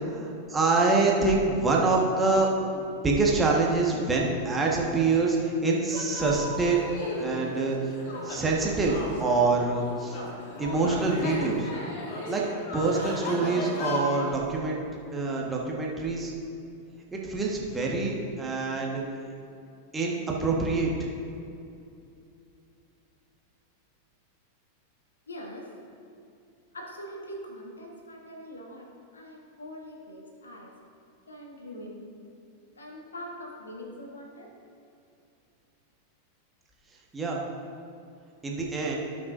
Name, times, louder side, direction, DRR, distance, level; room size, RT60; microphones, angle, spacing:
voice 1, 0.0-2.5 2.7-6.8 7.2-7.8 8.2-10.2 10.6-11.7 12.3-12.4 12.7-14.8 15.1-16.3 17.1-19.0 19.9-21.1 37.1-37.4 38.4-39.0, right 3 dB, 15° right, -3 dB, 1.5 m, -25 dB
sound 1, 5.9-14.4, left 1 dB, 50° left, 1.8 m, -35 dB
voice 2, 25.3-25.7 26.7-28.9 29.1-30.7 31.3-32.0 32.7-34.5, equal, 75° left, 0 dB, 1.5 m, -42 dB
17.0 x 6.1 x 2.6 m, 2.6 s
figure-of-eight pair, 90°, 0 cm